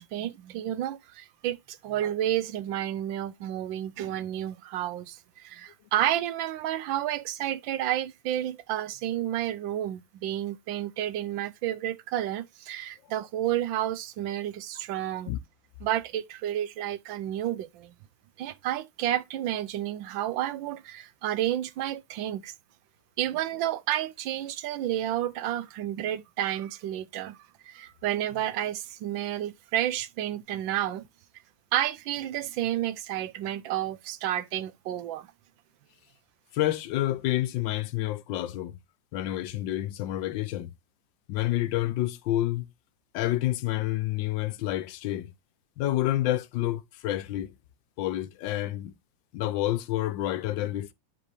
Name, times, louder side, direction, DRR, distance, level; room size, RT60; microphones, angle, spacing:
voice 1, 0.0-15.3 15.8-17.9 18.4-22.5 23.2-27.4 27.7-31.1 31.7-35.3, right 12 dB, 90° right, 1.4 m, -31 dB
voice 2, 36.5-38.8 39.1-40.7 41.3-42.7 43.1-45.3 45.8-47.5 48.0-48.9 49.3-50.9, left 14 dB, 80° left, 1.3 m, -29 dB
8.7 x 5.2 x 3.2 m
omnidirectional pair, 2.0 m